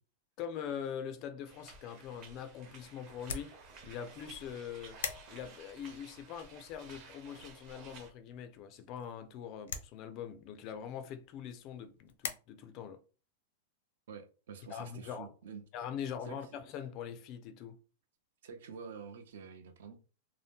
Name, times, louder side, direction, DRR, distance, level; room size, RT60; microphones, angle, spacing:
voice 1, 0.4-3.5 3.9-5.0 5.3-13.0 14.7-15.3 15.7-17.8, left 8 dB, 30° left, 0.3 m, -43 dB
sound 1, 1.5-8.1, right 4 dB, 30° right, 0.6 m, -54 dB
sound 2, 3.0-12.3, left 6 dB, 80° left, 0.6 m, -47 dB
voice 2, 14.1-15.7 16.3-16.4 18.4-20.0, right 6 dB, 65° right, 0.6 m, -48 dB
2.7 x 2.1 x 3.4 m
supercardioid pair, 175°, 0 cm